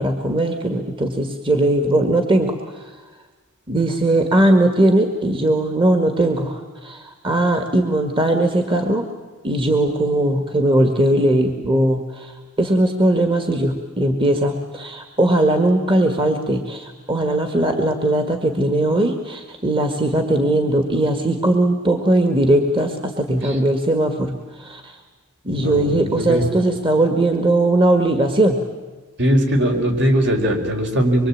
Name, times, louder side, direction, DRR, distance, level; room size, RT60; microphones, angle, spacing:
voice 1, 0.0-2.9 3.7-9.0 9.4-25.0 25.4-28.6, right 1 dB, 25° right, 6 dB, 1.9 m, -19 dB
voice 2, 25.5-26.5 29.2-31.3, equal, 55° right, 3 dB, 4.9 m, -20 dB
25.0 x 24.0 x 8.7 m, 1.3 s
head